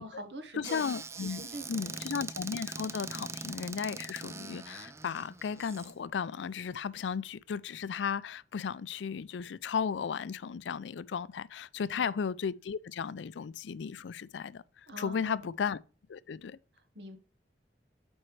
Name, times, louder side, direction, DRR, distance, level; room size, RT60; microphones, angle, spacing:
voice 1, 0.0-0.8 1.1-2.1 3.1-3.3 11.8-12.1 14.9-15.5 16.9-17.2, equal, 75° right, 1.4 m, -45 dB
voice 2, 0.6-14.6 15.0-15.8 16.1-16.6, left 6 dB, 85° left, 0.4 m, -35 dB
Squeak / Cupboard open or close, 0.6-5.9, right 4 dB, 15° right, 0.4 m, -42 dB
8.7 x 4.4 x 3.2 m
head